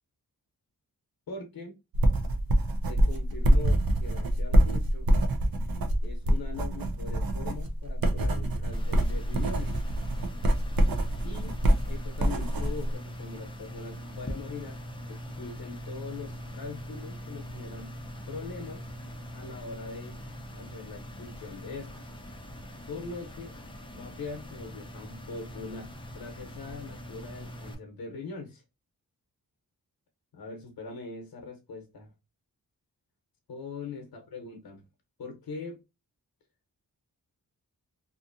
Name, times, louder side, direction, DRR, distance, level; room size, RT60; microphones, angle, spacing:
voice 1, 1.3-1.8 2.8-5.1 6.0-9.8 11.2-11.6 11.9-14.8 15.1-17.9 18.3-18.9 19.3-20.2 20.5-22.1 22.9-23.6 23.9-28.6 30.3-32.1 33.5-34.8 35.2-35.8, left 4 dB, 80° left, 0.8 m, -41 dB
sound 1, 1.9-12.9, right 1 dB, 70° right, 0.6 m, -25 dB
sound 2, 8.7-27.7, equal, 15° left, 0.4 m, -42 dB
2.7 x 2.5 x 2.5 m
wide cardioid pair, 155°, 36 cm